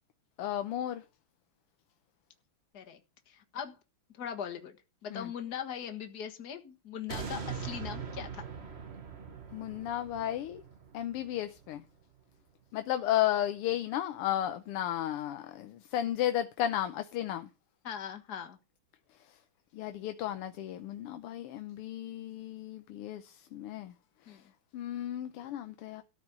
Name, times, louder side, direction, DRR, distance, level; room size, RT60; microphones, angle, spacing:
voice 1, 0.4-1.0 5.1-5.3 9.5-10.6 10.9-11.8 12.7-17.5 19.7-23.9 24.3-24.4 24.7-26.0, left 12 dB, 90° left, 1.7 m, -34 dB
voice 2, 3.3-3.8 4.1-4.8 5.0-8.5 17.8-18.6 24.3-24.4, left 8 dB, 50° left, 2.0 m, -40 dB
sound 1, 7.1-12.2 12.7-12.8, right 6 dB, 35° right, 1.3 m, -42 dB
13.5 x 5.3 x 8.6 m
omnidirectional pair, 2.4 m